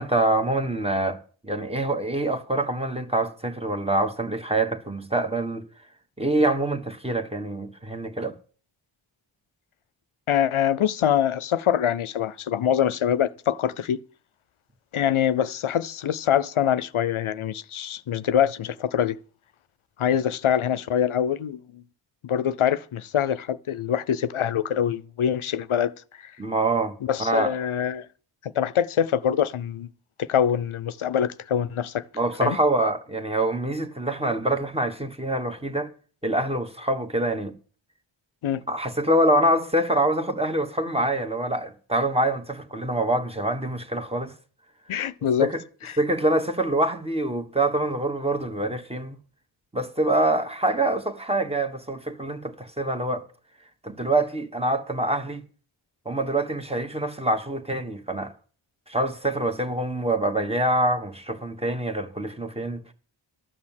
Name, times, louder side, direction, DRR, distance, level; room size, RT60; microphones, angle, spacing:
voice 1, 0.0-5.7 6.2-8.3 26.4-26.9 27.2-27.5 32.1-35.9 36.2-37.5 38.7-44.3 45.4-45.6 46.0-49.2 49.7-53.2 53.8-55.4 56.0-58.3 58.9-62.8, right 1 dB, 10° right, 1.3 m, -25 dB
voice 2, 10.3-14.0 14.9-19.2 20.0-21.8 22.2-25.9 27.0-28.1 28.4-29.9 30.3-32.0 32.4-32.6 38.4-38.6 44.9-45.5 45.8-45.9, left 9 dB, 80° left, 0.6 m, -24 dB
12.5 x 6.4 x 7.4 m
wide cardioid pair, 75°, 48 cm